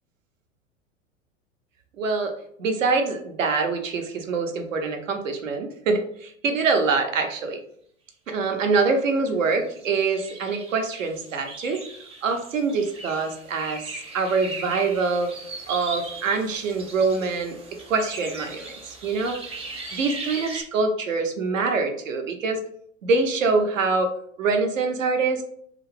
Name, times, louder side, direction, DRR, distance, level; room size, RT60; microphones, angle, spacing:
voice 1, 2.0-2.3 2.6-7.6 8.3-11.8 12.2-15.3 15.7-17.6 17.9-19.4 19.9-22.6 23.0-24.1 24.4-25.4, right 4 dB, 75° right, 4 dB, 0.7 m, -24 dB
sound 1, 9.5-20.6, right 3 dB, 15° right, 0.6 m, -39 dB
2.5 x 2.4 x 3.2 m, 0.65 s
figure-of-eight pair, 90°, 40 cm